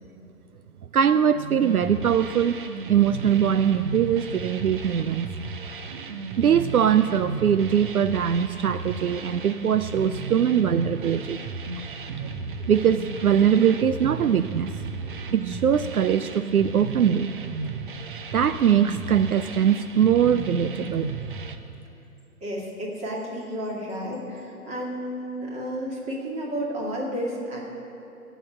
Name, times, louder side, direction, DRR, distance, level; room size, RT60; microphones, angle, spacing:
voice 1, 0.9-2.6 2.9-5.3 6.4-11.4 12.2-12.3 12.7-14.7 15.3-17.3 18.3-21.1, right 8 dB, 65° right, 12 dB, 0.6 m, -22 dB
sound 1, 1.6-21.6, right 4 dB, 35° right, 0.9 m, -34 dB
voice 2, 22.4-27.6, equal, 15° right, -2 dB, 2.2 m, -32 dB
16.5 x 8.1 x 9.9 m, 2.8 s
figure-of-eight pair, 135°, 46 cm